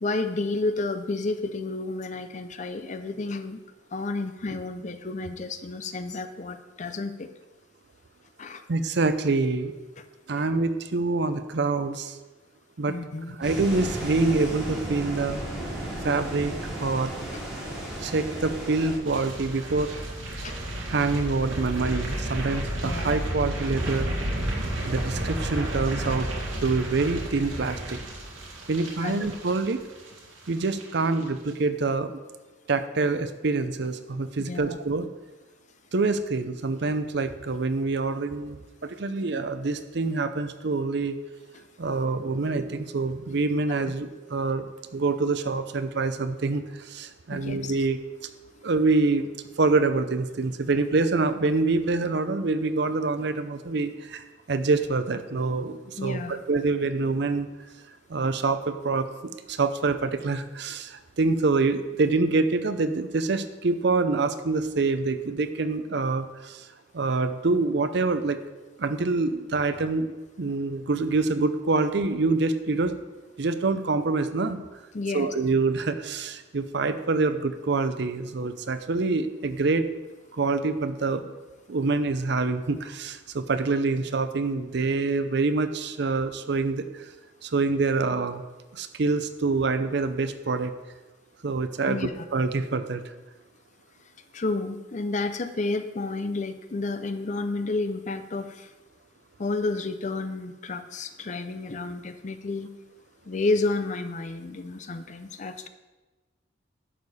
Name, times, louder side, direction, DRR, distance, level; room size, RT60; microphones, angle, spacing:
voice 1, 0.0-3.6 3.9-7.3 8.4-8.6 12.9-13.3 16.0-16.1 17.3-17.4 20.4-20.6 22.8-23.1 24.7-24.8 29.0-29.3 34.5-34.8 41.5-41.6 43.9-44.0 47.3-47.8 56.0-56.4 74.9-75.3 91.9-92.1 94.3-98.7 99.4-102.7 103.3-105.7, left 3 dB, 40° left, 10 dB, 0.5 m, -31 dB
voice 2, 8.7-9.7 10.3-12.2 12.8-12.9 13.3-15.4 16.0-17.1 18.0-19.9 20.9-24.1 24.9-26.3 26.6-28.0 28.7-29.8 30.5-32.2 32.7-35.1 35.9-41.2 41.8-44.6 44.9-48.0 48.6-49.3 49.6-57.5 58.1-66.7 66.9-68.4 68.8-72.9 73.4-74.6 75.1-79.9 80.3-81.3 81.7-87.1 87.4-88.4 88.7-90.7 91.4-93.0, right 3 dB, 60° right, 10 dB, 0.6 m, -26 dB
sound 1, 13.4-19.0, right 1 dB, 5° right, 2.7 m, -34 dB
sound 2, 19.0-30.2 30.5-30.8 31.1-31.2, right 1 dB, 80° right, 2.0 m, -32 dB
11.0 x 6.6 x 4.2 m, 1.2 s
head